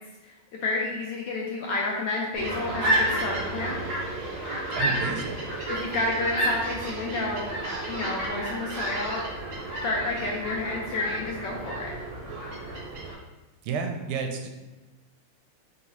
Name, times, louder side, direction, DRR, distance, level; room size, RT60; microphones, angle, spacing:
voice 1, 0.2-3.8 5.7-7.5 7.9-9.2 9.8-12.0, left 2 dB, 75° left, -1 dB, 1.0 m, -30 dB
sound 1, 2.3-13.1, right 1 dB, 50° right, 1.9 m, -31 dB
voice 2, 4.7-5.4 13.6-14.5, right 5 dB, 80° right, 4 dB, 1.5 m, -31 dB
3.9 x 3.7 x 3.0 m, 1.1 s
omnidirectional pair, 2.4 m